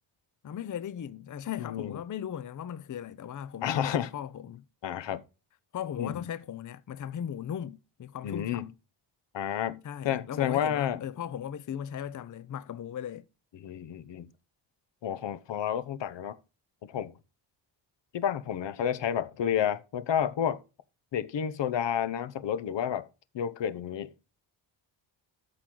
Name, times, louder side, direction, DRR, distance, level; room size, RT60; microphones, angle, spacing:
voice 1, 0.4-4.6 5.7-8.7 9.8-13.3, left 9 dB, 45° left, 0.6 m, -37 dB
voice 2, 1.6-2.0 3.6-4.1 4.8-5.2 6.0-6.2 8.2-8.7 9.3-9.8 10.0-11.0 13.6-14.3 15.0-16.4 16.8-17.1 18.1-20.6 21.1-23.1 23.3-24.1, left 9 dB, 70° left, 0.9 m, -30 dB
13.0 x 4.7 x 3.8 m
cardioid pair, 95°, 45 cm